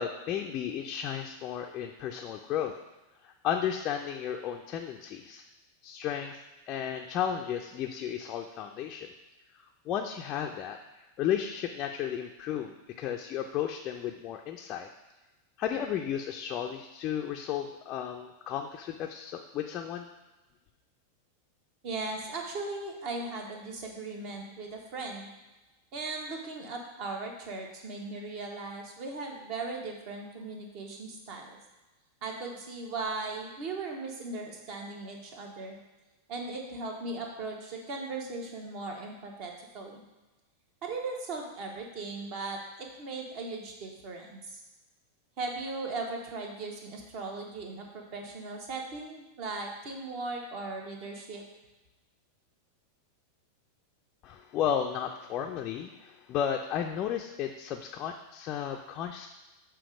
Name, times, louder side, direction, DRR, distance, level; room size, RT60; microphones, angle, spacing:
voice 1, 0.0-2.7 3.2-5.4 5.8-9.1 9.9-14.9 15.6-20.1 54.2-59.3, left 9 dB, 35° left, 2 dB, 0.4 m, -34 dB
voice 2, 21.8-25.3 25.9-31.6 32.2-35.8 36.3-40.0 40.8-44.6 45.4-51.4, right 3 dB, 45° right, 2 dB, 1.1 m, -38 dB
6.9 x 2.9 x 5.1 m, 1.1 s
figure-of-eight pair, 90°, 0 cm